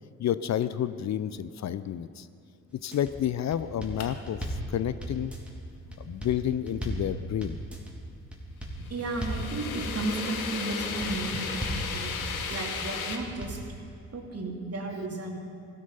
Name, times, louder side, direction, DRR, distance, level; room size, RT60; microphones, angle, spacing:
voice 1, 0.2-2.3 2.8-5.3 6.0-7.6, left 10 dB, 40° left, 14 dB, 0.6 m, -30 dB
sound 1, 2.7-3.1 3.5-4.7 5.0-5.5 5.9-7.1 7.4-7.9 8.3-8.8 9.1-9.5 9.8-10.3 10.7-11.2 11.5-11.9 12.2-12.7 13.1-13.6, equal, 5° right, 3.1 m, -36 dB
sound 2, 4.0-4.1 8.8-13.2, left 6 dB, 90° left, 0.9 m, -35 dB
voice 2, 8.8-12.2 12.5-13.6 14.1-15.4, right 2 dB, 35° right, 1 dB, 2.7 m, -34 dB
16.5 x 12.5 x 5.6 m, 2.5 s
figure-of-eight pair, 40°, 41 cm